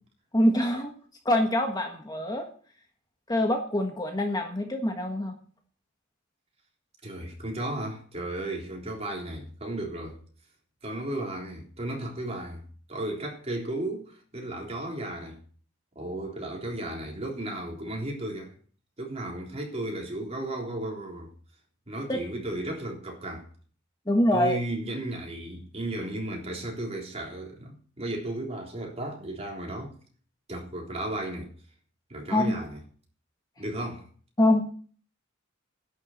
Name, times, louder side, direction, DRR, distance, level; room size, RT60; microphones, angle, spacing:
voice 1, 0.3-0.9 1.2-2.5 3.3-5.3 22.1-22.2 24.1-24.6 32.3-32.5 34.4-34.7, left 1 dB, 20° left, 1.5 m, -24 dB
voice 2, 7.0-10.2 10.8-12.6 12.9-15.4 16.0-18.5 19.0-21.3 21.9-23.5 24.3-29.9 30.5-31.5 32.1-32.8 33.6-34.0, right 1 dB, 30° right, 3.7 m, -34 dB
11.0 x 7.1 x 8.3 m
head